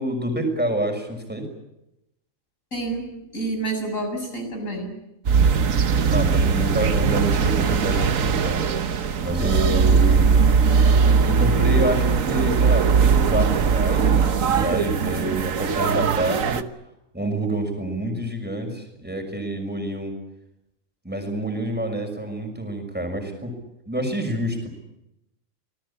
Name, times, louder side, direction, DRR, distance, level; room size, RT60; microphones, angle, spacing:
voice 1, 0.0-1.5 6.1-8.6 9.2-10.3 11.2-16.6 17.1-20.1 21.0-23.5 23.9-24.7, right 1 dB, 5° right, 4 dB, 6.0 m, -27 dB
voice 2, 2.7-4.9 9.4-10.2, right 2 dB, 75° left, 4 dB, 7.7 m, -30 dB
sound 1, 5.2-16.6, right 6 dB, 75° right, 1.5 m, -20 dB
28.0 x 19.5 x 8.7 m, 0.88 s
omnidirectional pair, 1.4 m